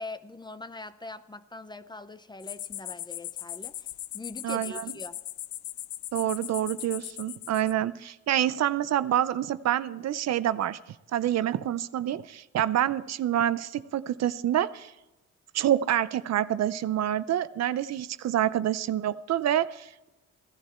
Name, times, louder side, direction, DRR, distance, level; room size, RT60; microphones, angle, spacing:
voice 1, 0.0-3.9 4.1-5.2, left 2 dB, 15° left, 13 dB, 0.6 m, -42 dB
sound 1, 2.4-7.7, left 14 dB, 70° left, 0.5 m, -39 dB
voice 2, 4.4-4.9 6.1-10.8 11.1-14.9 15.5-20.1, right 11 dB, 60° right, 15 dB, 0.6 m, -27 dB
16.0 x 11.5 x 4.4 m, 1.0 s
cardioid pair, 90°, 30 cm